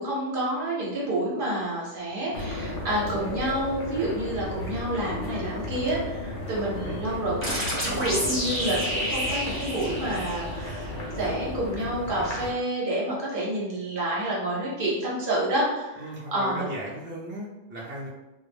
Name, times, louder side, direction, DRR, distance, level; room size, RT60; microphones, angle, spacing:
voice 1, 0.0-7.4 7.7-16.7, right 1 dB, 55° right, -5 dB, 0.8 m, -29 dB
sound 1, 2.3-12.5, left 1 dB, 85° left, 1.0 m, -34 dB
voice 2, 6.7-7.0 16.0-18.1, equal, 15° right, -6 dB, 0.4 m, -37 dB
sound 2, 7.4-10.9, equal, 10° left, 0.8 m, -30 dB
2.2 x 2.0 x 3.2 m, 1.0 s
omnidirectional pair, 1.2 m